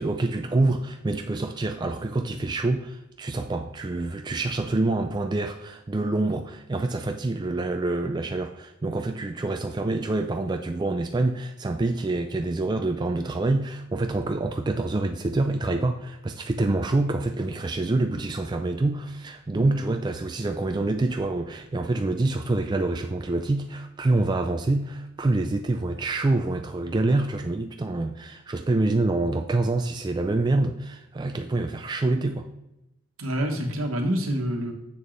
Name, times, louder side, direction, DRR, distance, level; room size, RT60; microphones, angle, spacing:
voice 1, 0.0-32.5, right 2 dB, 20° right, 5 dB, 0.3 m, -26 dB
voice 2, 19.5-19.9 33.2-34.7, equal, 75° right, 3 dB, 1.2 m, -27 dB
7.0 x 6.2 x 3.2 m, 0.90 s
head